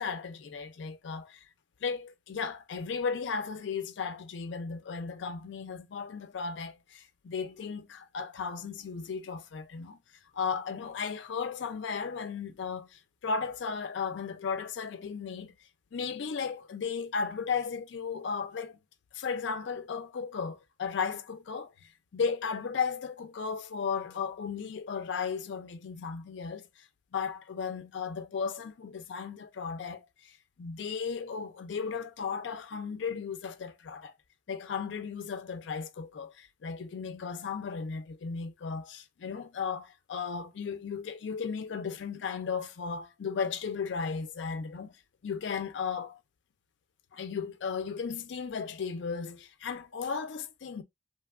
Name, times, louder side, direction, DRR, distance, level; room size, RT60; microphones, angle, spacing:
voice 1, 0.0-1.4 1.8-10.0 10.3-15.5 15.9-18.8 19.1-26.7 27.1-34.1 34.5-45.0 45.2-46.2 47.1-50.8, left 5 dB, 70° left, 0.4 m, -35 dB
3.2 x 2.2 x 2.3 m
head